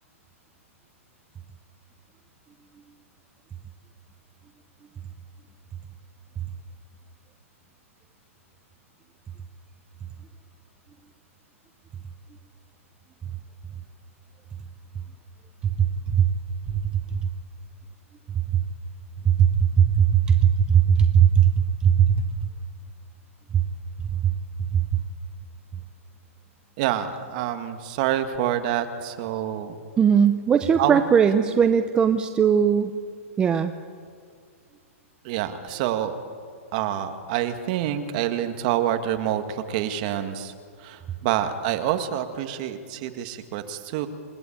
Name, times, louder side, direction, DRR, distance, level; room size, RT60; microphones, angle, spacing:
voice 1, 15.8-16.3 16.7-16.8 17.1-17.2 18.5-18.6 19.2-22.2 23.5-23.6 24.2-24.3 24.7-24.8 30.0-33.0 33.4-33.7, right 8 dB, 10° right, 9 dB, 0.6 m, -19 dB
voice 2, 26.8-29.8 30.8-31.0 35.2-36.2 36.7-40.5 40.8-44.1, right 11 dB, 35° right, 8 dB, 1.8 m, -27 dB
29.0 x 17.5 x 8.7 m, 2.1 s
hypercardioid pair, 165°, 8 cm